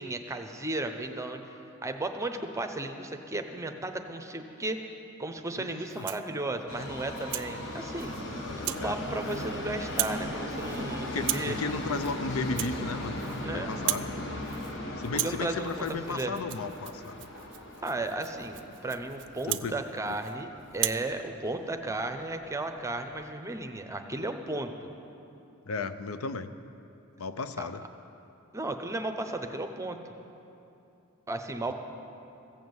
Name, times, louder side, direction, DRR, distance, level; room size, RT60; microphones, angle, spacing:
voice 1, 0.0-1.4 1.8-4.8 5.2-8.2 8.7-11.6 13.4-13.8 15.2-16.3 17.8-24.9 27.6-27.7 28.5-30.0 31.3-31.7, right 2 dB, 15° right, 6 dB, 0.7 m, -34 dB
voice 2, 5.6-6.1 8.4-8.9 11.1-14.1 15.0-17.2 19.5-19.7 25.7-26.5 27.2-27.8 31.7-31.8, left 4 dB, 80° left, 12 dB, 0.5 m, -35 dB
Rattle (instrument), 5.9-6.3 6.8-7.5 8.0-8.2 8.6-8.9 9.2-9.6 9.8-10.2 10.5-10.8 11.2-11.6 11.9-12.2 12.4-13.4 13.7-14.1 14.4-14.8 15.0-20.4 20.7-21.1, right 16 dB, 60° right, 0.4 m, -36 dB
Subway metro underground, 6.7-20.8 21.1-21.2 22.0-22.1 22.4-22.5 23.1-23.2, left 1 dB, 65° left, 1.4 m, -38 dB
15.0 x 7.2 x 7.9 m, 2.8 s
head